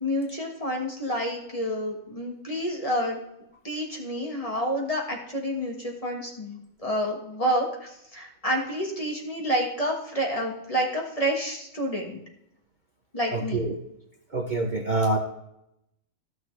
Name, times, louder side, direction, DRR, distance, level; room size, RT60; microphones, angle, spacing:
voice 1, 0.0-3.2 3.6-12.2 13.1-13.6, equal, 25° left, 0 dB, 1.5 m, -29 dB
voice 2, 13.3-13.7 14.3-15.2, right 2 dB, 40° right, 1 dB, 0.9 m, -26 dB
14.0 x 6.3 x 3.2 m, 0.82 s
omnidirectional pair, 1.5 m